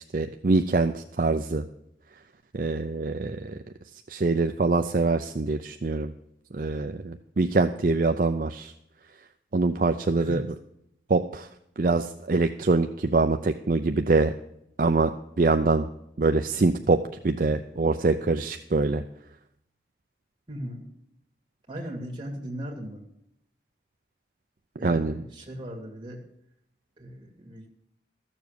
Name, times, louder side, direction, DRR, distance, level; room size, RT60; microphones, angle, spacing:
voice 1, 0.1-1.7 2.5-3.6 4.1-6.1 6.5-8.7 9.5-10.4 11.1-11.5 11.8-14.3 14.8-15.1 15.4-15.9 16.2-17.0 17.2-19.0 24.8-25.2, right 3 dB, 50° right, 7 dB, 0.5 m, -24 dB
voice 2, 20.5-20.9 21.7-23.0 24.8-26.2 27.0-27.7, equal, 25° right, -1 dB, 2.6 m, -37 dB
14.0 x 7.2 x 6.7 m, 0.77 s
head